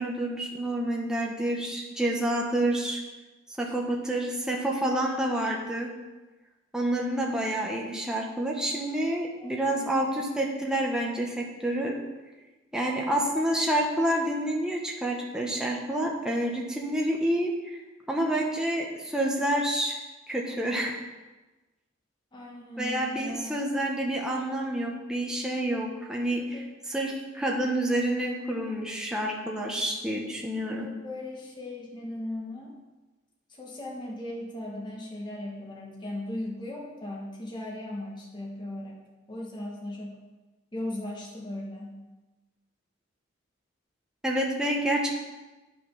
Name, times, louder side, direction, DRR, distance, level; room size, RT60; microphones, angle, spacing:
voice 1, 0.0-3.0 3.6-5.9 6.7-11.9 12.7-17.5 18.1-20.0 20.3-20.9 22.8-26.6 26.9-30.9 44.2-45.1, right 1 dB, 5° right, -2 dB, 1.1 m, -28 dB
voice 2, 9.3-9.9 22.3-23.5 26.5-26.7 28.6-28.8 30.8-32.8 33.5-39.0 39.3-40.2 40.7-42.0, left 1 dB, 20° left, -3 dB, 1.3 m, -38 dB
9.8 x 6.0 x 5.5 m, 1.2 s
head